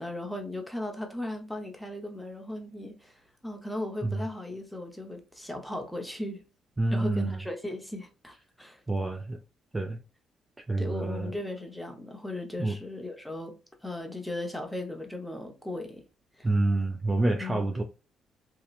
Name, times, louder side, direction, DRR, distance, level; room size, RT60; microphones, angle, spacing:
voice 1, 0.0-6.4 6.9-8.8 10.8-13.5 13.8-16.0 16.4-16.5 17.4-17.7, left 1 dB, 5° left, 0.7 m, -37 dB
voice 2, 6.8-7.4 8.9-9.4 9.7-10.0 10.7-11.4 12.6-12.8 16.4-17.8, right 2 dB, 20° right, 0.3 m, -28 dB
2.8 x 2.1 x 2.3 m
cardioid pair, 90°, 0 cm